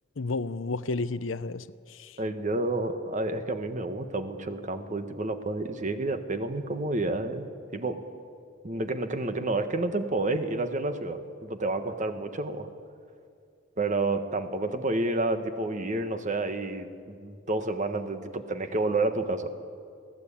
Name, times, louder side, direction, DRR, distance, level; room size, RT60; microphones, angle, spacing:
voice 1, 0.2-2.2, left 3 dB, 80° left, 0.7 m, -32 dB
voice 2, 2.2-8.0 8.6-12.7 13.8-19.5, right 2 dB, 40° right, 1.3 m, -30 dB
24.0 x 17.0 x 8.6 m
head